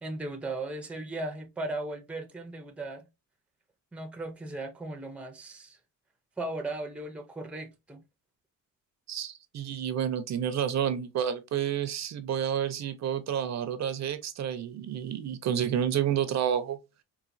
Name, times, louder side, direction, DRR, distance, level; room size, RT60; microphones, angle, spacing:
voice 1, 0.0-3.1 3.9-5.8 6.4-8.0, right 2 dB, 5° right, 0.5 m, -37 dB
voice 2, 9.1-16.8, right 9 dB, 50° right, 0.5 m, -30 dB
4.0 x 2.5 x 2.5 m
cardioid pair, 140°, 34 cm